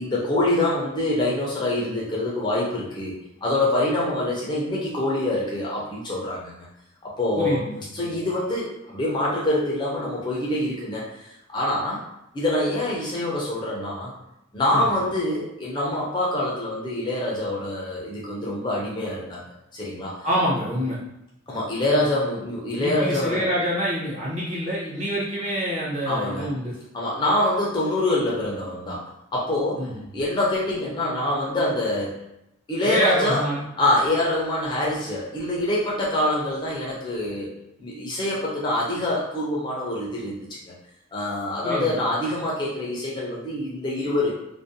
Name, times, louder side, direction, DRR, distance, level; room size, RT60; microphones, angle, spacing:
voice 1, 0.0-3.1 3.4-6.7 7.0-7.6 7.9-12.0 12.3-14.1 14.5-19.4 19.7-20.3 21.5-23.4 26.1-26.5 26.9-32.2 32.7-33.5 33.8-37.5 37.8-40.6 41.1-44.3, left 1 dB, 20° left, -5 dB, 0.4 m, -25 dB
voice 2, 7.4-8.1 14.7-14.9 20.2-21.0 22.8-26.7 29.8-30.0 32.8-33.6 41.6-42.0, equal, 35° right, -7 dB, 0.7 m, -26 dB
2.5 x 2.1 x 2.6 m, 0.87 s
head